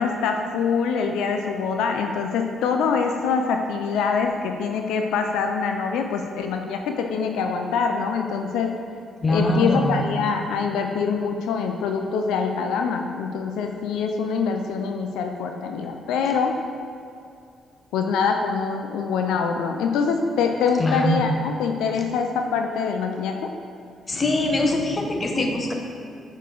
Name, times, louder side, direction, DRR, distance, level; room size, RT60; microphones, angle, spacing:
voice 1, 0.0-8.8 9.3-16.6 17.9-23.5, left 5 dB, 90° left, 4 dB, 0.4 m, -24 dB
voice 2, 9.2-10.0 20.8-21.2 24.1-25.7, left 1 dB, 30° left, 2 dB, 0.8 m, -22 dB
6.5 x 5.1 x 3.8 m, 2.5 s
cardioid pair, 90°, 0 cm